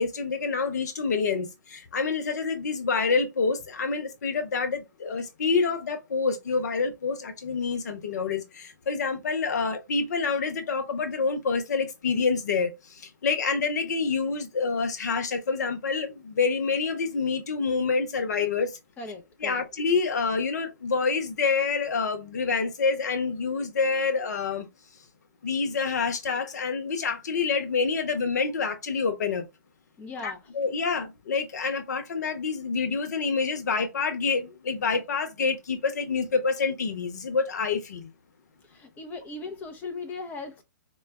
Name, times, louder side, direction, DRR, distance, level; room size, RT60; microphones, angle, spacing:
voice 1, 0.0-12.7 13.2-18.8 19.4-24.7 25.4-29.5 30.2-38.1, left 4 dB, 60° left, 1.0 m, -27 dB
voice 2, 19.0-19.6 30.0-30.4 38.7-40.6, left 3 dB, 15° left, 0.7 m, -38 dB
4.8 x 2.3 x 3.3 m
figure-of-eight pair, 120°, 11 cm